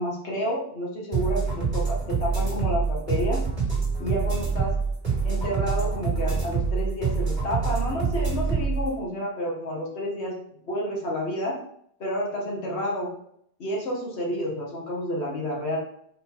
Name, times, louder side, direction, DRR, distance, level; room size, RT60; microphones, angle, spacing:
voice 1, 0.0-3.4 4.0-4.8 5.2-10.4 10.7-11.6 12.0-13.1 13.6-15.8, equal, 65° left, -3 dB, 1.8 m, -30 dB
sound 1, 1.1-8.9, right 5 dB, 35° right, 3.2 m, -26 dB
5.7 x 4.3 x 4.5 m, 0.69 s
omnidirectional pair, 1.2 m